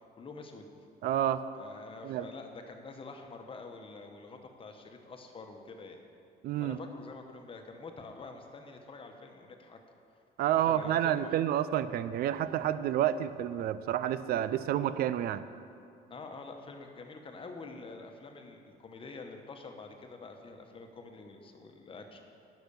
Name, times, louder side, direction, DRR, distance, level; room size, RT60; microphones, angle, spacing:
voice 1, 0.2-0.7 1.5-6.0 6.6-9.8 10.6-11.4 12.6-12.7 16.1-22.2, left 3 dB, 30° left, 4 dB, 1.1 m, -47 dB
voice 2, 1.0-1.4 2.0-2.3 6.4-6.8 10.4-15.4, right 11 dB, 65° right, 14 dB, 0.5 m, -29 dB
10.0 x 6.1 x 6.8 m, 2.5 s
cardioid pair, 110°, 17 cm